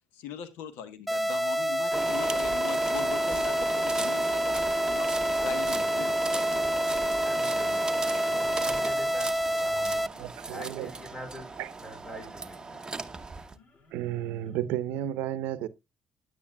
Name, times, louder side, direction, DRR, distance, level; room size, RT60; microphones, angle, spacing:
voice 1, 0.1-5.1 5.4-7.0, left 9 dB, 90° left, 1.0 m, -41 dB
sound 1, 1.1-10.1, equal, ahead, 0.4 m, -28 dB
sound 2, 1.9-13.5, right 4 dB, 20° right, 0.9 m, -36 dB
sound 3, 2.8-14.7, left 2 dB, 50° left, 2.8 m, -60 dB
voice 2, 5.4-6.1 7.2-7.9 8.3-13.4, equal, 25° left, 4.3 m, -46 dB
voice 3, 10.2-10.9 11.6-11.7 12.1-12.2 13.9-15.7, right 12 dB, 85° right, 0.6 m, -32 dB
10.0 x 8.9 x 2.2 m
supercardioid pair, 75°, 3 cm